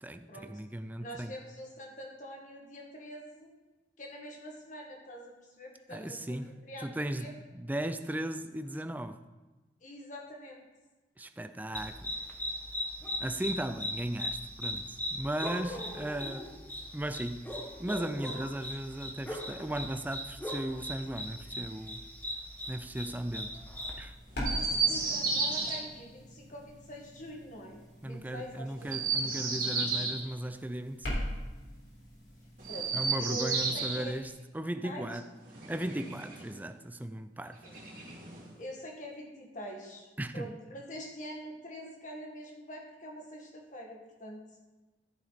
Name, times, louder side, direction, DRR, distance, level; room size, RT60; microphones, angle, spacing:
voice 1, 0.0-1.3 5.9-6.5 6.8-7.3 7.5-9.2 11.2-12.1 13.2-16.5 16.9-22.0 22.7-23.6 24.0-24.1 28.0-31.2 32.9-35.3 35.7-37.6 40.2-40.5, right 1 dB, 10° right, 0.4 m, -37 dB
voice 2, 1.0-3.5 4.0-6.4 6.6-7.3 9.8-10.7 15.7-15.9 24.5-28.9 32.7-34.1 34.8-35.2 37.6-37.8 38.5-40.1 40.3-44.4, equal, 45° left, 1.9 m, -45 dB
sound 1, 11.7-24.0, left 1 dB, 10° left, 1.2 m, -39 dB
sound 2, 24.0-34.3, equal, 70° left, 3.7 m, -43 dB
Chirp tweet, 24.4-25.8 28.8-30.2 32.6-34.0 35.4-36.5 37.6-38.5, right 4 dB, 50° right, 2.5 m, -32 dB
14.0 x 6.5 x 4.1 m
head